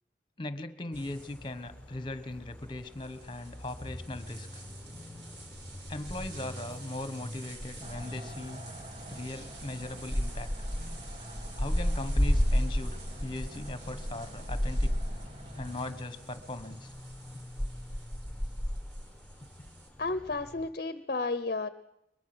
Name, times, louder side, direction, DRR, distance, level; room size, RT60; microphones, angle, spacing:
voice 1, 0.4-4.6 5.9-8.6 9.1-10.5 11.6-15.0 15.5-16.9, left 2 dB, 30° left, 12 dB, 1.4 m, -39 dB
sound 1, 0.9-20.7, equal, 5° left, 1.5 m, -35 dB
sound 2, 0.9-19.9, right 3 dB, 90° right, 5.1 m, -52 dB
sound 3, 7.8-15.8, right 1 dB, 35° right, 1.8 m, -49 dB
voice 2, 20.0-21.7, left 3 dB, 55° left, 13 dB, 0.8 m, -32 dB
22.5 x 22.0 x 6.3 m, 0.86 s
head